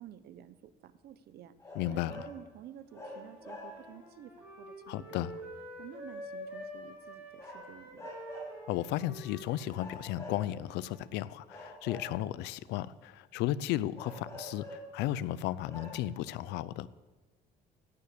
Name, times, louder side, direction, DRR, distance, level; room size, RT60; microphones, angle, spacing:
voice 1, 0.0-1.5 1.9-5.4 5.8-8.1, right 10 dB, 70° right, 1.0 m, -51 dB
sound 1, 1.6-2.4 2.9-4.0 7.4-8.6 9.7-10.8 11.5-12.5 13.9-15.0 15.4-15.5 15.7-16.0, left 1 dB, 15° left, 5.8 m, -46 dB
voice 2, 1.7-2.1 4.9-5.3 8.7-16.9, left 13 dB, 90° left, 0.6 m, -34 dB
Wind instrument woodwind instrument, 2.8-11.0, equal, 10° right, 5.6 m, -48 dB
16.5 x 9.8 x 6.8 m
cardioid pair, 110°, 17 cm